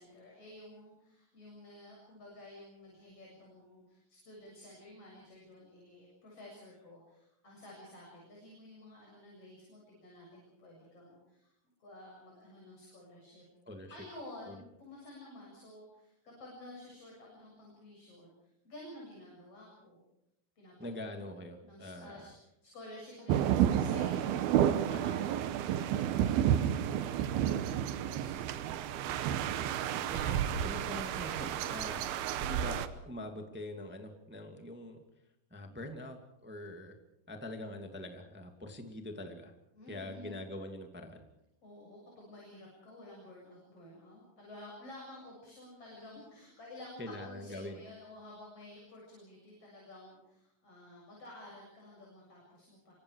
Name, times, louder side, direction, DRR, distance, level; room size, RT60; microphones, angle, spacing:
voice 1, 0.0-11.5 11.8-13.4 13.9-20.0 20.6-20.7 21.6-22.3 22.6-27.2 27.6-28.6 29.4-29.9 39.7-40.5 41.6-52.9, left 1 dB, 35° left, -3 dB, 8.4 m, -52 dB
voice 2, 13.6-14.0 14.5-14.6 20.8-22.3 24.9-25.2 29.9-32.1 32.4-35.0 35.5-36.9 37.3-39.5 39.9-41.2 47.0-47.8, left 1 dB, 5° right, 4 dB, 1.7 m, -44 dB
sound 1, 23.3-32.9, right 10 dB, 80° right, 3.0 m, -31 dB
28.0 x 25.0 x 4.9 m, 0.82 s
omnidirectional pair, 4.4 m